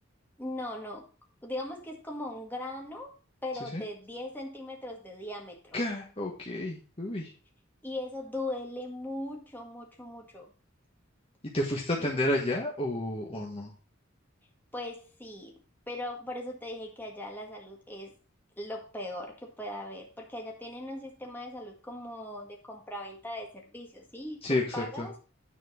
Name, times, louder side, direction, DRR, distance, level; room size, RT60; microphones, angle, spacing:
voice 1, 0.4-1.0 1.4-3.2 3.4-5.8 7.8-10.5 12.0-12.1 14.7-15.5 15.9-18.1 18.6-25.2, left 1 dB, 10° left, -1 dB, 1.9 m, -39 dB
voice 2, 5.7-7.3 11.5-13.7 24.4-25.1, left 1 dB, 30° left, -1 dB, 1.4 m, -31 dB
9.6 x 4.4 x 5.6 m, 0.37 s
head